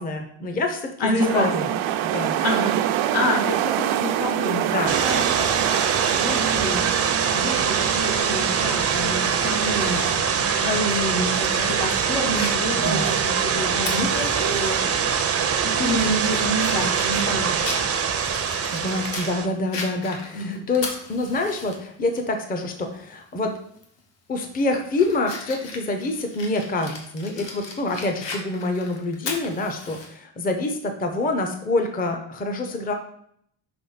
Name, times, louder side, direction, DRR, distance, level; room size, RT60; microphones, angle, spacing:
voice 1, 0.0-1.6 2.0-2.4 4.7-5.0 12.7-13.1 13.9-14.1 18.7-23.5 24.3-32.9, left 2 dB, 20° left, 5 dB, 0.6 m, -26 dB
voice 2, 1.0-1.7 2.4-5.5 6.1-6.9 7.3-14.9 15.6-17.8 20.3-20.6, left 1 dB, 85° left, 0 dB, 1.9 m, -28 dB
sound 1, 1.2-10.2, right 11 dB, 85° right, 0.6 m, -26 dB
sound 2, 4.9-19.5, right 7 dB, 35° right, 0.5 m, -23 dB
Fire, 10.9-14.8 15.2-15.3 15.8-19.3 19.7-21.8 22.2-22.3 23.7-24.0 24.5-30.1, left 3 dB, 65° left, 1.4 m, -37 dB
5.9 x 3.4 x 5.7 m, 0.68 s
cardioid pair, 165°, 46 cm